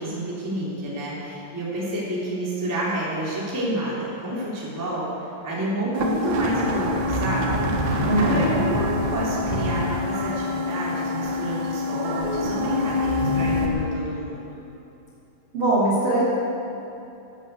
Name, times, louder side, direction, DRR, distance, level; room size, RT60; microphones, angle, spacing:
voice 1, 0.0-5.1 5.4-14.5, right 1 dB, 5° right, -7 dB, 2.2 m, -29 dB
hollow minor second glitches, 5.9-13.7, left 1 dB, 85° right, 1.7 m, -25 dB
voice 2, 8.1-8.6 15.5-16.2, right 1 dB, 35° right, -7 dB, 2.3 m, -21 dB
12.0 x 11.5 x 8.3 m, 2.9 s
omnidirectional pair, 5.9 m